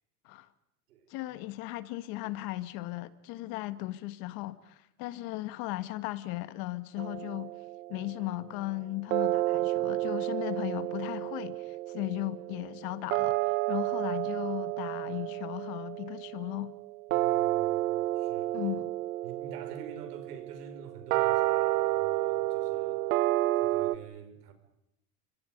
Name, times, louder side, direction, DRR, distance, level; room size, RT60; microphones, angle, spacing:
voice 1, 1.1-7.6 7.9-16.7 18.5-18.9, left 18 dB, 50° left, 1.7 m, -37 dB
sound 1, 7.0-8.3 9.1-24.0, right 17 dB, 70° right, 1.2 m, -31 dB
voice 2, 17.1-18.6 19.2-23.0 23.6-24.5, right 7 dB, 85° right, 5.5 m, -47 dB
29.5 x 25.0 x 5.3 m
supercardioid pair, 130°, 45 cm